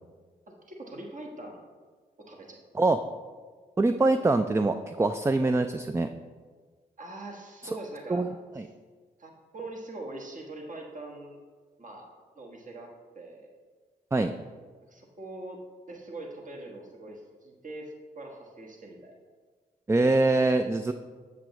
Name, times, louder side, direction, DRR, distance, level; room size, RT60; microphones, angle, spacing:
voice 1, 0.5-1.6 2.2-2.6 7.0-8.3 9.2-11.4 11.8-12.1 12.3-12.9 13.1-13.5 14.9-15.6 15.9-19.1, right 2 dB, 45° right, 1 dB, 1.3 m, -42 dB
voice 2, 3.8-6.1 8.1-8.7 14.1-14.3 19.9-20.9, right 2 dB, 15° right, 8 dB, 0.3 m, -24 dB
7.5 x 6.7 x 3.0 m, 1.5 s
supercardioid pair, 40°, 19 cm